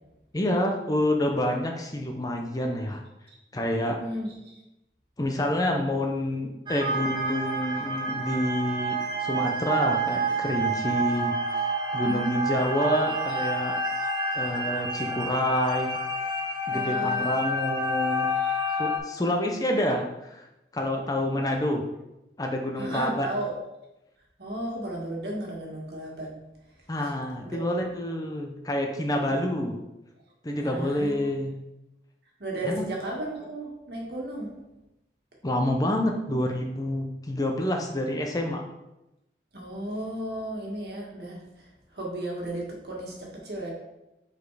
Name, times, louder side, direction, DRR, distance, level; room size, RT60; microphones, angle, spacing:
voice 1, 0.3-3.0 3.5-4.0 5.2-13.8 14.3-16.0 16.7-18.3 18.8-20.5 20.7-21.8 22.4-23.3 26.9-29.8 30.4-31.5 32.6-32.8 35.4-38.6, left 1 dB, 20° left, 2 dB, 0.6 m, -28 dB
voice 2, 4.0-4.6 11.8-12.6 16.7-17.3 18.3-18.8 22.8-23.5 24.4-26.3 27.0-27.1 27.4-27.7 30.6-31.3 32.4-34.5 39.5-41.7 41.9-43.7, right 1 dB, 70° right, -2 dB, 1.7 m, -34 dB
sound 1, 6.7-19.0, right 1 dB, 25° right, 0.9 m, -29 dB
5.3 x 4.1 x 4.8 m, 0.93 s
head